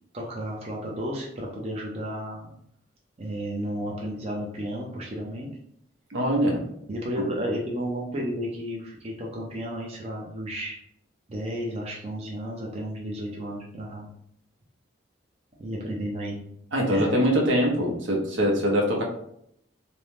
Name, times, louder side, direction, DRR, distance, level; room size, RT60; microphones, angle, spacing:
voice 1, 0.1-2.5 3.2-5.5 6.9-10.8 11.3-14.1 15.6-16.4 16.9-17.1, equal, 35° right, -3 dB, 0.5 m, -33 dB
voice 2, 6.1-6.7 7.2-7.3 16.7-19.0, equal, 75° right, 0 dB, 0.7 m, -23 dB
2.6 x 2.1 x 3.1 m, 0.72 s
head